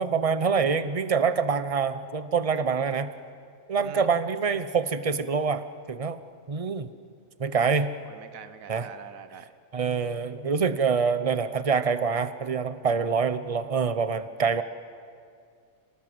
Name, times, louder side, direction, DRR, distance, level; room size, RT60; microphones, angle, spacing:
voice 1, 0.0-3.1 3.7-5.6 5.9-6.2 6.5-6.9 7.4-7.9 8.7-8.9 9.7-14.6, right 5 dB, 30° right, 12 dB, 0.7 m, -25 dB
voice 2, 8.1-9.5, right 8 dB, 85° right, 12 dB, 1.3 m, -44 dB
26.0 x 19.0 x 7.7 m, 2.2 s
omnidirectional pair, 1.4 m